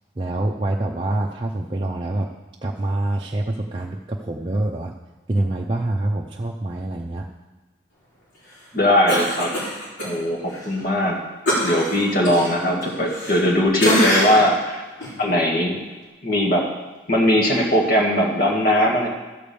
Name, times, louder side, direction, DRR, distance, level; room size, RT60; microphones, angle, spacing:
voice 1, 0.2-2.3 2.6-4.9 5.3-7.3, right 1 dB, 25° right, -2 dB, 0.5 m, -25 dB
voice 2, 8.7-9.5 10.0-11.2 11.6-14.8 15.2-15.8 16.2-16.7 17.1-19.1, equal, 50° left, -1 dB, 2.0 m, -19 dB
Cough, 9.1-10.1 10.5-10.6 11.5-13.5 13.8-14.5 15.0-15.1, equal, 80° left, 3.9 m, -23 dB
13.0 x 4.9 x 7.0 m, 1.2 s
head